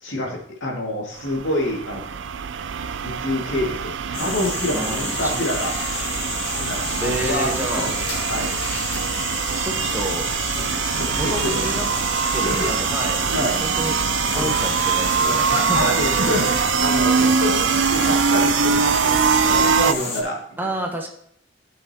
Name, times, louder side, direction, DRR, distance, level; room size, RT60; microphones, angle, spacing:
voice 1, 0.0-2.2 3.0-5.7 6.4-7.5 7.7-7.8 8.1-8.5 10.6-11.6 12.4-12.7 13.3-13.6 14.3-14.6 15.2-20.7, left 1 dB, 85° left, -1 dB, 2.3 m, -27 dB
sound 1, 1.2-19.9, right 6 dB, 75° right, 0.4 m, -23 dB
sound 2, 4.1-20.2, left 2 dB, 60° left, 2.7 m, -30 dB
voice 2, 4.7-5.4 7.0-7.9 9.6-10.3 11.1-11.9 12.3-14.0 14.3-16.4 20.6-21.1, right 1 dB, 10° right, 2 dB, 0.9 m, -29 dB
14.0 x 5.8 x 2.9 m, 0.68 s
head